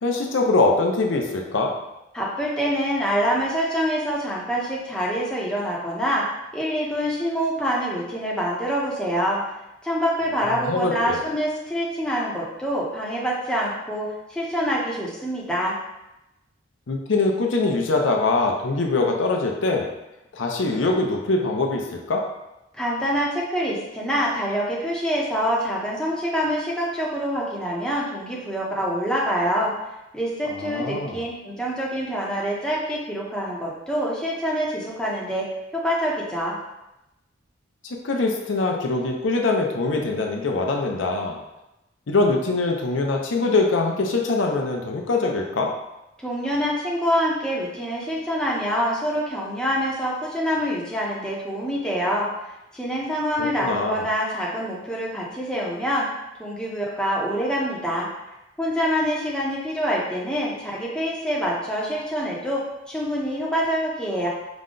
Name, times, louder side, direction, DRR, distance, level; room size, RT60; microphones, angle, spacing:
voice 1, 0.0-1.7 10.5-11.2 16.9-19.9 20.3-22.2 30.5-31.2 38.0-41.4 42.1-45.7 53.4-54.0, left 3 dB, 80° left, 1 dB, 0.6 m, -23 dB
voice 2, 2.1-9.4 9.8-15.7 22.7-29.7 30.1-35.4 35.7-36.5 46.2-52.3 52.7-56.1 56.4-58.1 58.6-62.6 62.9-64.3, equal, 5° left, -5 dB, 0.7 m, -25 dB
5.0 x 2.2 x 3.8 m, 0.93 s
head